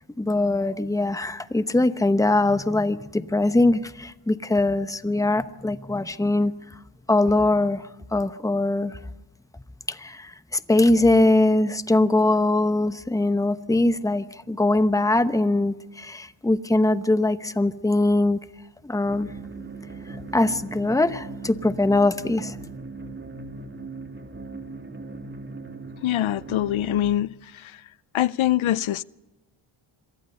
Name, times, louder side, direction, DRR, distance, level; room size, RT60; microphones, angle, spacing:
voice 1, 0.2-6.5 7.1-9.0 9.9-18.4 18.8-19.3 20.3-22.6, left 2 dB, 5° left, 0.9 m, -22 dB
sound 1, 19.1-27.1, right 3 dB, 25° right, 2.7 m, -39 dB
voice 2, 26.0-27.7 28.1-29.0, left 13 dB, 75° left, 0.7 m, -24 dB
26.5 x 23.5 x 5.5 m
wide cardioid pair, 125°, 48 cm